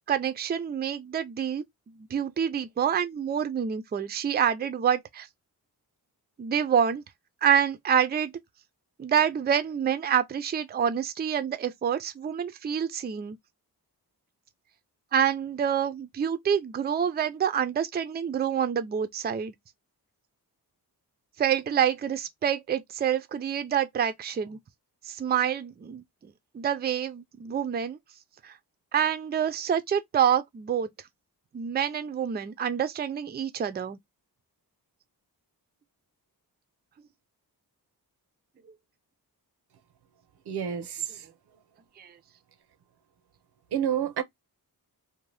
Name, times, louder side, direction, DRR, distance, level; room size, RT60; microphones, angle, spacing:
voice 1, 0.1-1.6 2.1-5.3 6.4-7.0 7.4-8.3 9.0-13.4 15.1-19.5 21.4-24.6 25.0-26.0 26.5-28.0 28.4-28.6 28.9-30.9 31.5-34.0 42.0-42.1, right 8 dB, 25° right, 0.4 m, -27 dB
voice 2, 40.5-41.2 43.7-44.2, right 9 dB, 90° right, 0.6 m, -29 dB
2.6 x 2.1 x 3.1 m
wide cardioid pair, 130°, 38 cm